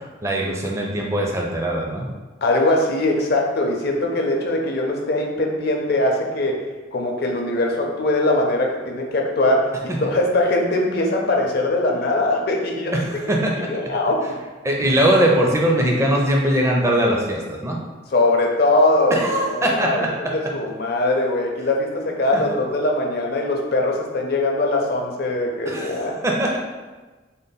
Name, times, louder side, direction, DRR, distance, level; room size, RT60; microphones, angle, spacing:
voice 1, 0.2-2.1 9.9-10.0 12.9-13.7 14.6-17.8 19.1-20.4 22.3-22.4 25.7-26.6, right 1 dB, 15° right, -1 dB, 0.5 m, -21 dB
voice 2, 2.4-6.6 6.9-12.9 13.7-14.4 18.1-20.1 20.3-26.2, left 2 dB, 55° left, 0 dB, 0.6 m, -21 dB
3.8 x 2.0 x 4.0 m, 1.3 s
head